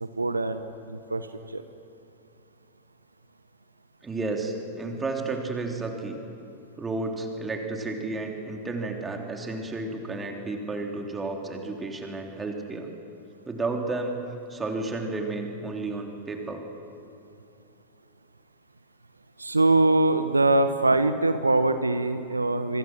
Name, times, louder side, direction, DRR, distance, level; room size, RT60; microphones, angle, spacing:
voice 1, 0.0-1.6 19.4-22.8, right 2 dB, 80° right, 10 dB, 0.9 m, -23 dB
voice 2, 4.0-6.2 6.8-12.9 13.5-14.2 14.5-16.6, right 3 dB, 15° right, 2 dB, 3.5 m, -32 dB
26.0 x 24.5 x 6.3 m, 2.8 s
figure-of-eight pair, 90°, 0 cm